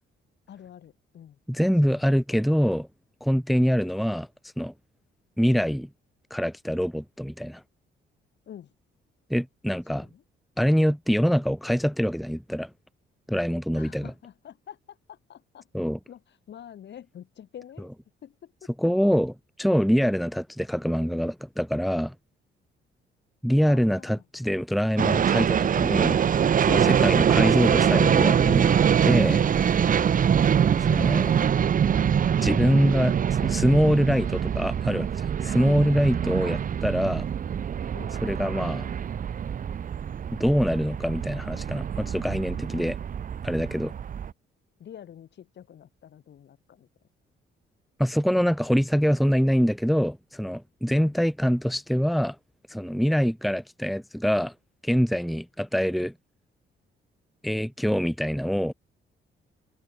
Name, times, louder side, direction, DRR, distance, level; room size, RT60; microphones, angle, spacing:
voice 1, 0.5-1.4 1.9-2.1 8.5-8.7 9.9-10.2 13.7-15.7 16.1-16.2 16.5-17.9 18.2-18.9 19.9-20.2 23.7-24.2 31.8-32.8 36.2-36.5 37.9-38.2 44.8-46.9 50.9-51.2, left 10 dB, 60° left, 2.7 m, -47 dB
voice 2, 1.5-2.9 3.2-4.3 4.6-4.7 5.4-5.9 6.3-7.6 9.3-10.1 10.6-12.7 13.3-14.1 15.7-16.0 18.8-22.1 23.4-26.2 26.6-28.7 29.0-29.4 30.8-31.3 32.4-33.2 33.4-37.3 38.2-38.9 40.3-43.0 43.4-43.9 48.0-52.4 52.7-54.5 54.8-56.1 57.4-58.7, equal, ahead, 1.0 m, -24 dB
sound 1, 25.0-44.3, right 8 dB, 45° right, 0.8 m, -24 dB
sound 2, 26.1-31.5, left 4 dB, 30° left, 2.9 m, -45 dB
cardioid pair, 90°, 20 cm